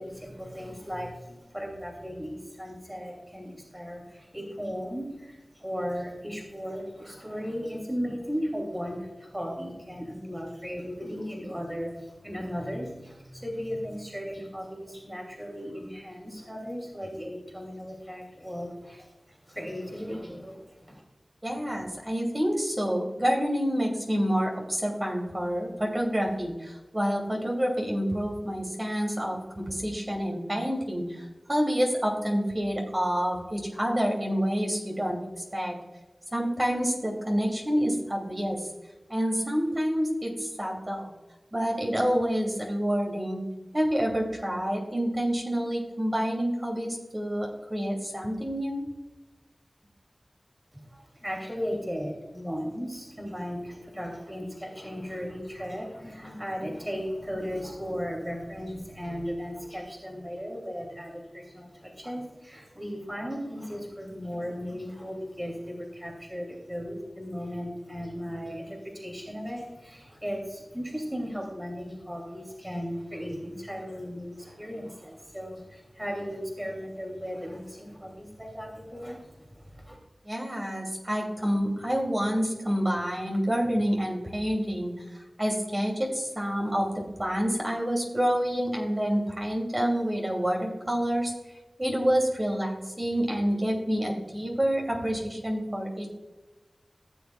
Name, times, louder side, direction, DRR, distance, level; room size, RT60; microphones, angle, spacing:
voice 1, 0.0-21.0 50.7-80.0, equal, 10° right, 0 dB, 2.8 m, -36 dB
voice 2, 21.4-35.2 35.5-35.7 36.3-38.6 39.1-41.1 41.5-43.4 43.7-48.8 80.2-86.9 87.2-91.3 91.8-96.1, equal, 30° right, -1 dB, 2.8 m, -28 dB
16.0 x 7.1 x 2.4 m, 1.1 s
cardioid pair, 40°, 0 cm